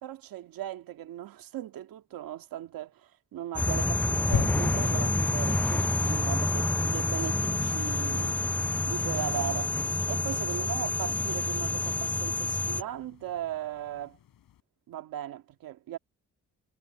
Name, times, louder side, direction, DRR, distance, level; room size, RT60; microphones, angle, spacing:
voice 1, 0.0-8.4 8.8-9.7 10.1-14.2 14.9-16.0, right 12 dB, 85° right, 2.3 m, -38 dB
sound 1, 3.6-12.8, left 2 dB, 5° left, 0.4 m, -28 dB
sound 2, 4.3-14.6, left 12 dB, 85° left, 5.2 m, -42 dB
supercardioid pair, 60°, 34 cm